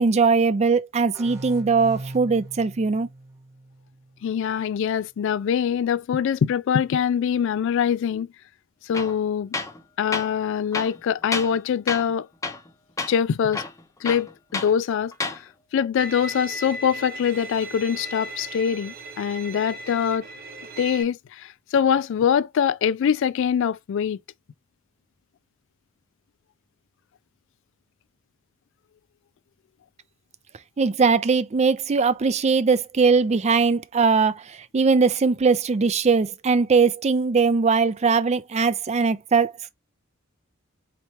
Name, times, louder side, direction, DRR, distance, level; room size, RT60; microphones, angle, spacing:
voice 1, 0.0-3.1 30.8-39.5, right 4 dB, 30° right, 0.4 m, -20 dB
sound 1, 1.1-4.6, right 2 dB, 15° right, 1.1 m, -40 dB
voice 2, 4.2-8.3 8.8-9.6 10.0-12.3 13.1-13.6 14.0-15.4 15.7-20.3 20.8-24.2, left 8 dB, 65° left, 0.3 m, -23 dB
Tools, 8.9-9.2 9.5-9.8 10.1-10.3 10.7-11.6 11.9-12.1 12.4-12.7 13.0-13.1 13.5-14.7 15.1-15.4, left 3 dB, 15° left, 0.6 m, -30 dB
Bowed string instrument, 16.0-21.0, right 2 dB, 45° right, 0.9 m, -37 dB
4.4 x 3.0 x 2.9 m
head